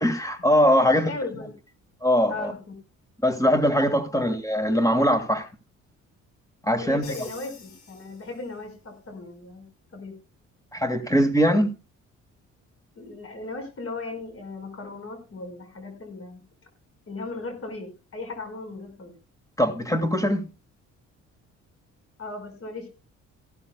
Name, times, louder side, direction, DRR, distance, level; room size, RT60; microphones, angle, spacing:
voice 1, 0.0-1.1 2.0-2.5 3.2-5.5 6.6-7.1 10.7-11.7 19.6-20.5, equal, 10° left, 2.0 m, -21 dB
voice 2, 0.8-1.5 2.3-2.8 4.1-4.3 6.7-9.7 9.9-10.1 12.9-16.4 17.1-19.1 22.2-22.9, left 3 dB, 50° left, 4.9 m, -37 dB
Crash cymbal, 7.0-8.8, left 5 dB, 75° left, 4.5 m, -47 dB
15.0 x 13.0 x 2.2 m
cardioid pair, 90°, 30 cm